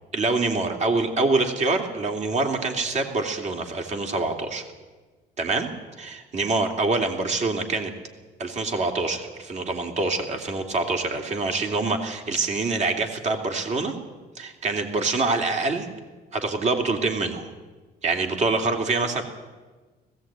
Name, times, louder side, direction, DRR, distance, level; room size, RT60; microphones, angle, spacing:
voice 1, 0.1-4.6 5.4-5.7 6.0-7.9 8.4-13.9 14.3-15.9 16.3-17.5 18.0-19.2, right 3 dB, 45° right, 4 dB, 3.0 m, -25 dB
19.0 x 16.0 x 9.0 m, 1.3 s
cardioid pair, 110°, 17 cm